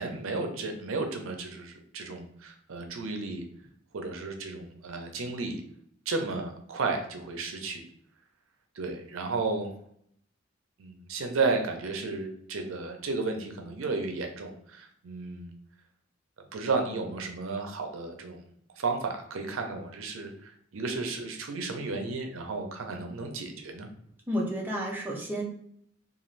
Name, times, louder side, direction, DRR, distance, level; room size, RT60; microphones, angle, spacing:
voice 1, 0.0-3.4 3.9-5.6 6.1-7.8 8.8-9.7 10.8-15.5 16.5-18.4 18.8-23.9, right 3 dB, 80° right, 4 dB, 0.5 m, -33 dB
voice 2, 24.3-25.4, equal, 10° right, -3 dB, 0.5 m, -31 dB
2.5 x 2.4 x 3.1 m, 0.68 s
head